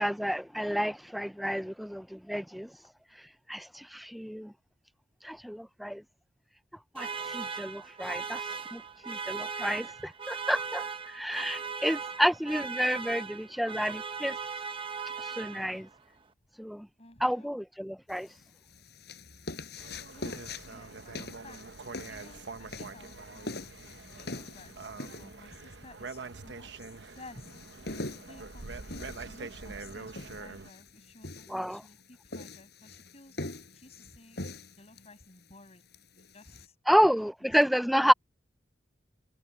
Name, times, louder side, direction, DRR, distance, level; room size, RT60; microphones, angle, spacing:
voice 1, 0.0-2.7 3.5-4.5 5.2-6.0 6.9-8.4 8.7-14.4 15.2-15.9 16.6-16.9 17.2-18.3 31.5-31.8 36.9-38.1, equal, ahead, 0.4 m, -30 dB
sound 1, 6.9-16.0, right 5 dB, 30° right, 1.1 m, -38 dB
voice 2, 17.0-17.5 20.1-23.7 24.1-27.5 28.3-33.4 33.7-34.4 34.8-37.1 37.4-37.5, left 2 dB, 35° left, 6.3 m, -54 dB
sound 2, 18.1-36.7, left 2 dB, 65° left, 5.1 m, -44 dB
sound 3, 19.8-30.7, right 4 dB, 75° right, 0.9 m, -45 dB
head